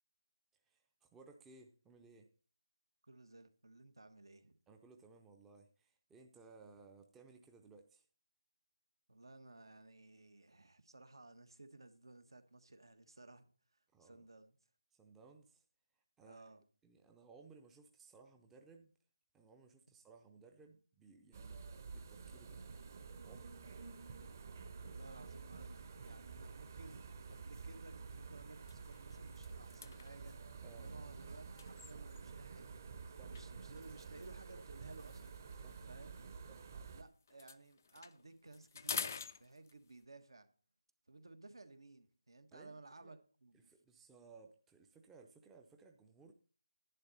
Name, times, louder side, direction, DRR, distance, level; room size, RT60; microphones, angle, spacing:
voice 1, 0.6-2.3 4.7-8.1 13.9-14.3 15.0-15.6 16.0-16.5 16.8-18.9 19.3-21.6 21.9-22.6 23.2-23.6 30.6-30.9 33.1-33.4 35.6-35.8 36.5-36.7 42.5-43.2 43.5-46.3, right 4 dB, 5° right, 0.6 m, -61 dB
voice 2, 3.1-4.5 9.1-13.5 13.7-14.5 16.2-16.6 24.8-30.4 30.8-32.8 33.3-35.3 35.9-36.2 36.9-40.5 41.1-43.7, right 2 dB, 75° right, 1.5 m, -57 dB
sound 1, 21.3-37.0, right 5 dB, 40° right, 1.1 m, -50 dB
sound 2, 28.2-28.3 28.5-32.5 33.3-36.9 37.2-40.0, left 6 dB, 40° left, 0.5 m, -49 dB
11.0 x 9.3 x 4.1 m
figure-of-eight pair, 160°, 2 cm